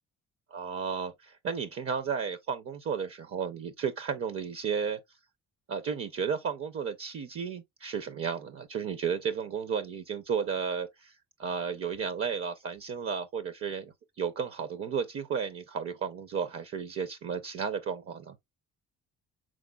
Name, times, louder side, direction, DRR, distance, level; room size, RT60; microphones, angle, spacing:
voice 1, 0.5-5.0 5.7-18.4, right 6 dB, 50° right, 0.6 m, -33 dB
6.3 x 3.7 x 2.3 m
cardioid pair, 90°, 30 cm